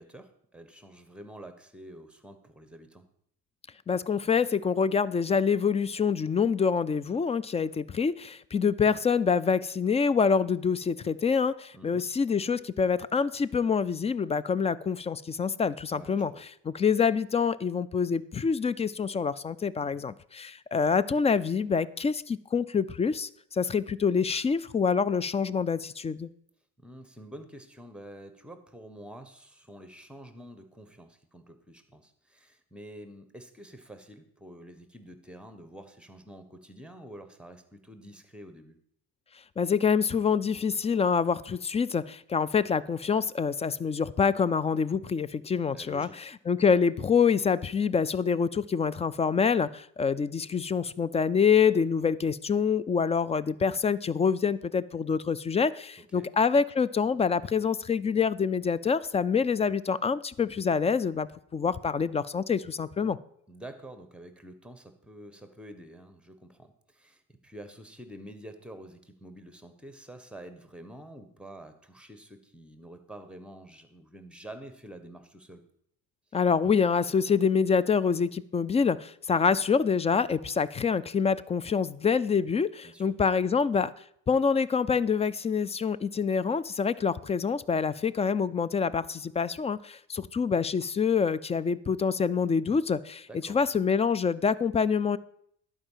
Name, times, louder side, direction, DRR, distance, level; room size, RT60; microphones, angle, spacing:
voice 1, 0.0-3.0 11.7-12.1 15.9-16.4 19.7-20.1 26.8-38.8 45.7-46.3 56.1-56.3 63.5-75.6 82.8-83.1 93.3-93.6, right 1 dB, 5° right, 9 dB, 1.3 m, -48 dB
voice 2, 3.9-16.3 16.7-26.3 39.6-46.1 46.5-63.2 76.3-83.9 84.3-95.2, left 6 dB, 20° left, 19 dB, 0.3 m, -26 dB
11.5 x 4.9 x 7.3 m, 0.68 s
supercardioid pair, 90°, 37 cm